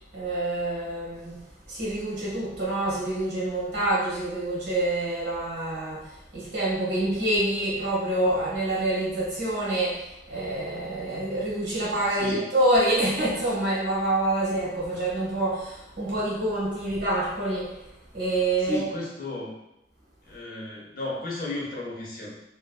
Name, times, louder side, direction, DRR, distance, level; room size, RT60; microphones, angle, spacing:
voice 1, 0.1-1.4 1.7-6.1 6.3-10.0 10.3-17.7 18.1-18.9, right 1 dB, 70° right, -5 dB, 1.3 m, -26 dB
voice 2, 12.1-12.5 18.6-19.5 20.2-22.3, left 1 dB, 55° left, -4 dB, 0.7 m, -33 dB
3.2 x 2.4 x 2.3 m, 0.89 s
head